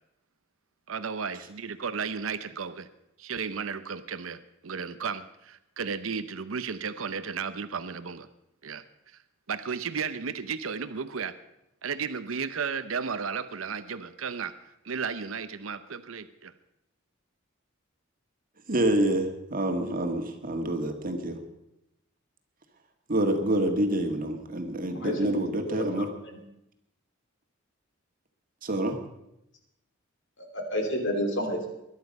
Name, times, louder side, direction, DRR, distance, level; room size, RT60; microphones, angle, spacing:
voice 1, 0.9-2.9 3.2-8.3 8.6-9.2 9.5-11.3 11.8-14.5 14.8-16.5, right 6 dB, 80° right, 12 dB, 0.7 m, -34 dB
voice 2, 18.7-21.4 23.1-26.1 28.6-29.0, right 1 dB, 45° right, 5 dB, 1.8 m, -27 dB
voice 3, 24.9-26.1 30.4-31.7, equal, 60° left, 4 dB, 3.1 m, -31 dB
21.5 x 11.5 x 5.3 m, 0.86 s
head